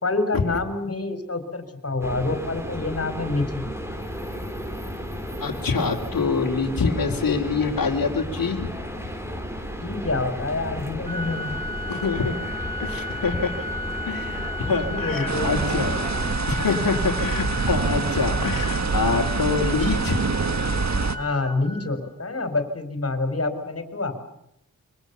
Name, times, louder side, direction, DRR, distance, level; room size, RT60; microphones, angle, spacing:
voice 1, 0.0-3.7 9.8-11.5 14.8-15.5 21.2-24.2, left 3 dB, 40° left, 8 dB, 4.4 m, -27 dB
sound 1, 2.0-16.3, equal, 5° right, 4.1 m, -33 dB
voice 2, 5.4-8.7 9.1-9.2 11.9-13.6 14.1-16.0 16.5-20.2, left 4 dB, 65° left, -2 dB, 3.2 m, -25 dB
Organ, 11.1-22.1, left 1 dB, 25° right, 1.7 m, -34 dB
sound 2, 15.3-21.2, right 4 dB, 50° right, 1.6 m, -25 dB
26.5 x 24.0 x 7.0 m, 0.78 s
wide cardioid pair, 120°, 36 cm